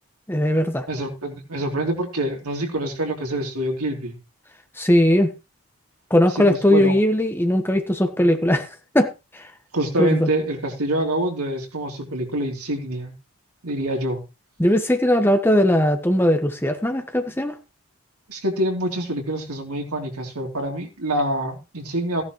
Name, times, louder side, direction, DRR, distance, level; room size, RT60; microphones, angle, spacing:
voice 1, 0.3-0.9 4.8-5.3 6.1-8.7 8.9-9.5 10.0-10.3 14.6-17.5, left 1 dB, 10° left, 7 dB, 1.1 m, -19 dB
voice 2, 0.9-4.2 6.4-6.9 9.7-13.1 13.6-14.2 18.3-22.2, right 1 dB, 85° right, 1 dB, 3.3 m, -26 dB
15.5 x 10.5 x 3.1 m, 0.28 s
head